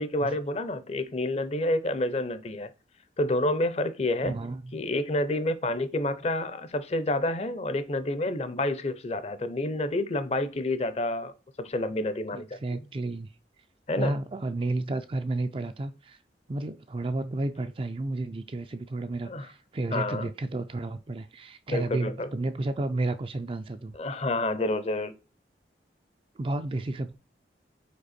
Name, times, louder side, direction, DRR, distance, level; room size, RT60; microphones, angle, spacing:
voice 1, 0.0-2.7 3.2-4.4 4.7-12.6 13.9-14.2 19.3-19.5 19.9-20.3 21.7-22.3 23.9-25.1, left 1 dB, 35° left, 0.6 m, -29 dB
voice 2, 4.2-4.7 12.3-13.3 14.0-16.2 16.5-24.0 26.4-27.2, right 2 dB, 30° right, 0.4 m, -32 dB
5.3 x 4.4 x 4.2 m
head